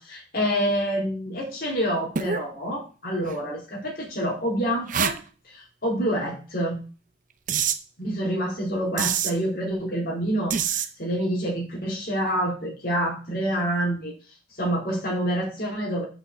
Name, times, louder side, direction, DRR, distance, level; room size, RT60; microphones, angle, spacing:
voice 1, 0.0-5.2 5.4-6.8 8.0-14.1 14.6-16.1, equal, 45° left, -2 dB, 2.6 m, -27 dB
sound 1, 2.2-2.5 3.3-3.4 4.9-5.2 7.5-7.8 9.0-9.3 10.5-10.9, right 7 dB, 40° right, 0.6 m, -25 dB
5.8 x 5.6 x 6.4 m, 0.34 s
head